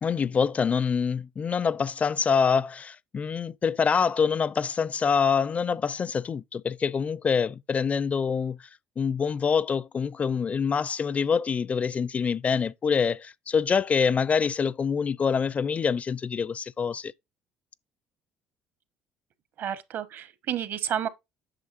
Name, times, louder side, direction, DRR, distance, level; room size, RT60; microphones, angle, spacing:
voice 1, 0.0-8.7 9.0-17.1, left 6 dB, 35° left, 0.5 m, -25 dB
voice 2, 19.6-21.1, right 9 dB, 60° right, 1.1 m, -30 dB
8.9 x 6.2 x 2.6 m
supercardioid pair, 70°, 4 cm